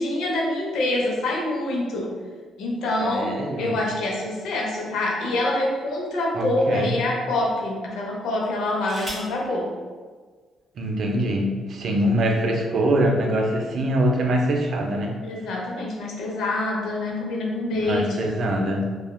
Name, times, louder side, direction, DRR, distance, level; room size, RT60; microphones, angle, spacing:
voice 1, 0.0-2.1 2.6-9.7 15.2-18.2, left 1 dB, 80° left, -1 dB, 0.6 m, -26 dB
voice 2, 3.0-3.8 6.3-7.0 10.8-15.1 17.8-18.8, right 1 dB, 60° right, 2 dB, 0.4 m, -23 dB
sound 1, 4.6-5.9 6.6-6.7 8.4-9.4 10.6-10.7 11.0-11.4, equal, 15° right, 1.1 m, -40 dB
3.1 x 2.2 x 2.2 m, 1.5 s
cardioid pair, 90°, 0 cm